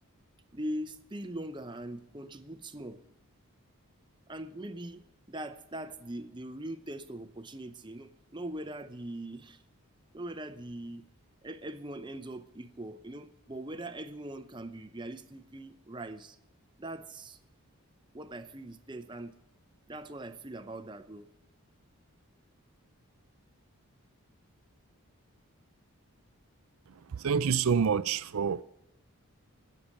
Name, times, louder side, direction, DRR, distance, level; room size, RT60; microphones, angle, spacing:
voice 1, 0.5-3.0 4.3-9.6 10.1-11.1 11.4-16.4 16.8-17.4 18.1-19.4 19.9-21.3, right 1 dB, 20° right, 0.7 m, -41 dB
voice 2, 27.1-28.6, right 6 dB, 75° right, 0.5 m, -27 dB
15.5 x 6.8 x 8.7 m
head